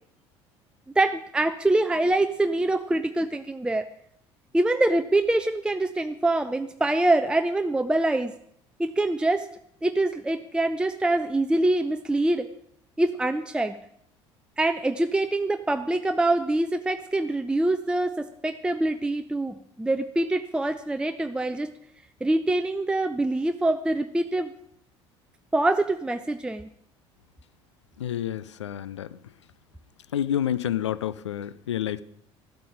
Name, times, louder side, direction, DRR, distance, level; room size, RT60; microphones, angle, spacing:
voice 1, 1.0-3.9 4.5-8.3 8.8-9.5 9.8-12.5 13.0-13.8 14.6-21.7 22.2-24.5 25.5-26.7, right 2 dB, 5° right, 0.6 m, -24 dB
voice 2, 28.0-29.1 30.1-32.0, left 10 dB, 75° left, 0.5 m, -29 dB
14.0 x 12.5 x 5.0 m
figure-of-eight pair, 60°, 15 cm